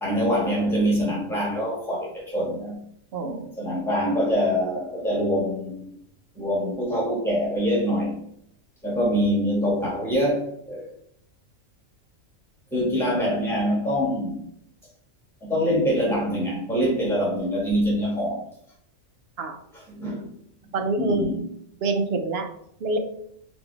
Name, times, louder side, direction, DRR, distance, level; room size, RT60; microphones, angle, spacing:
voice 1, 0.0-2.8 3.6-6.0 6.3-8.2 8.8-10.9 12.7-14.5 15.4-18.4 19.7-20.3 21.0-21.5, equal, ahead, -5 dB, 1.6 m, -24 dB
voice 2, 3.1-3.5 19.4-19.6 20.7-21.3 21.8-22.5 22.8-23.0, right 2 dB, 60° right, 5 dB, 0.8 m, -26 dB
4.0 x 3.7 x 3.4 m, 0.70 s
omnidirectional pair, 1.4 m